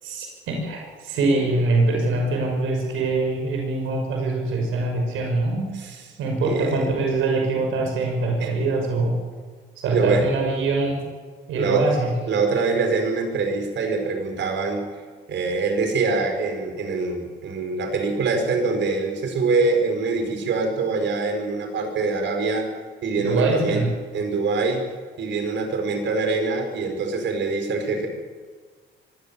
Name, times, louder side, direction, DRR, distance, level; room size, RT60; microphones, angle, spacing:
voice 1, 0.0-5.7 6.2-9.1 9.8-11.0 11.5-12.1 23.2-23.9, right 3 dB, 85° right, 1 dB, 6.0 m, -23 dB
voice 2, 5.7-6.1 6.4-6.9 8.4-8.6 9.9-10.3 11.5-11.8 12.3-14.9 15.3-22.7 23.0-23.8 24.1-24.8 25.2-28.1, right 4 dB, 65° right, 5 dB, 5.3 m, -24 dB
23.5 x 16.5 x 7.3 m, 1.6 s
cardioid pair, 90°, 20 cm